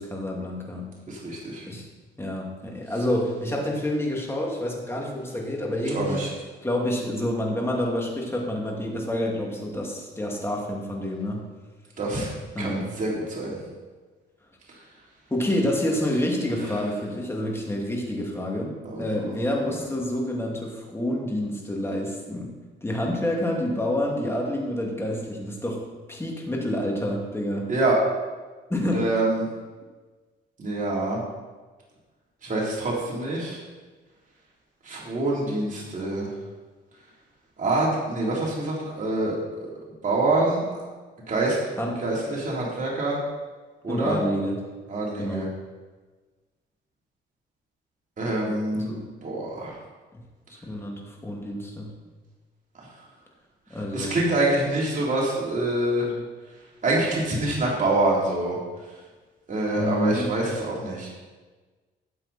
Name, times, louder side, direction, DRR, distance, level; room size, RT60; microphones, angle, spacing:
voice 1, 0.0-1.0 1.7-1.9 2.2-6.2 6.6-11.5 12.5-13.0 15.3-22.6 22.8-27.7 28.7-29.1 41.8-42.0 43.9-44.6 45.2-45.6 48.7-49.0 50.1-50.2 50.6-51.9 53.7-54.2 59.8-60.3, left 1 dB, 10° left, -1 dB, 2.7 m, -28 dB
voice 2, 1.1-1.6 5.9-6.3 12.0-12.3 12.6-13.6 18.8-19.3 19.7-19.8 27.7-28.0 28.9-29.5 30.6-31.2 32.4-33.6 34.8-36.3 37.6-39.4 40.0-40.8 41.3-41.6 42.0-43.2 43.8-44.2 44.9-45.5 48.2-48.9 49.2-49.7 53.9-56.1 56.8-58.6 59.5-61.1, right 2 dB, 40° right, -4 dB, 3.8 m, -25 dB
13.0 x 7.8 x 4.4 m, 1.3 s
cardioid pair, 90°, 20 cm